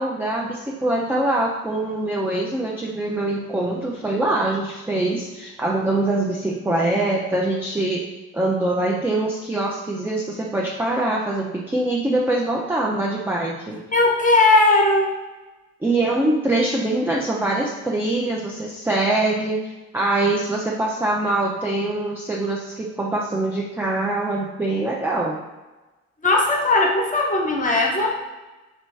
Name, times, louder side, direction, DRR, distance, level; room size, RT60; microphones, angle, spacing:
voice 1, 0.0-8.1 8.3-13.8 15.8-19.6 19.9-25.4, right 2 dB, 5° right, -2 dB, 0.4 m, -23 dB
voice 2, 13.9-15.1 26.2-28.1, left 2 dB, 20° left, 0 dB, 1.0 m, -18 dB
3.1 x 3.0 x 4.6 m, 1.1 s
hypercardioid pair, 55°, 42 cm